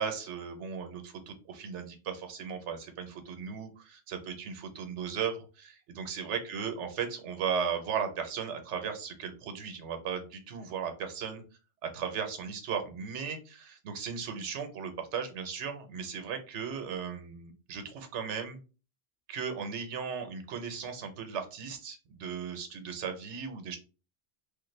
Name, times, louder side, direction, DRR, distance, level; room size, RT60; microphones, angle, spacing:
voice 1, 0.0-11.4 11.9-18.6 19.3-23.8, right 6 dB, 80° right, 6 dB, 1.0 m, -36 dB
3.4 x 2.1 x 3.1 m, 0.34 s
omnidirectional pair, 1.2 m